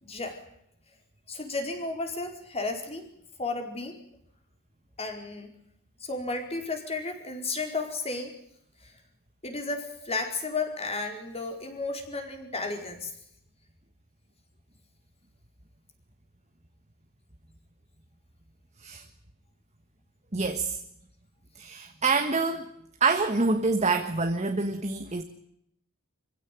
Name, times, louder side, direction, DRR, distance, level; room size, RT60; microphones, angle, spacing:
voice 1, 0.0-0.4 1.3-3.1 3.4-4.0 5.0-5.5 6.0-8.3 8.8-9.0 9.4-13.1, left 3 dB, 30° left, 4 dB, 4.6 m, -33 dB
voice 2, 20.3-20.8 21.6-22.7 23.0-25.2, right 3 dB, 30° right, 5 dB, 1.6 m, -26 dB
26.0 x 16.5 x 9.3 m, 0.73 s
head